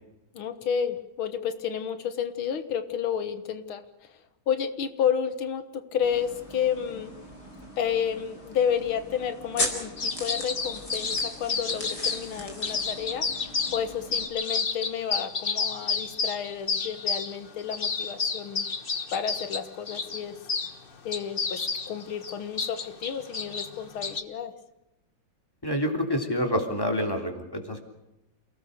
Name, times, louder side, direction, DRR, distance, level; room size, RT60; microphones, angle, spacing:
voice 1, 0.3-3.8 4.5-7.1 7.8-13.3 13.7-18.6 19.1-20.3 21.1-21.6 21.9-24.5, left 8 dB, 90° left, 10 dB, 2.2 m, -31 dB
sound 1, 6.0-14.3, left 1 dB, 50° left, 5.1 m, -38 dB
sound 2, 10.0-12.3 12.6-13.8 14.1-20.7 21.1-24.2, left 5 dB, 30° left, 1.2 m, -30 dB
voice 2, 25.6-27.8, equal, 10° left, 4 dB, 3.3 m, -27 dB
28.5 x 18.5 x 6.7 m, 0.93 s
omnidirectional pair, 2.2 m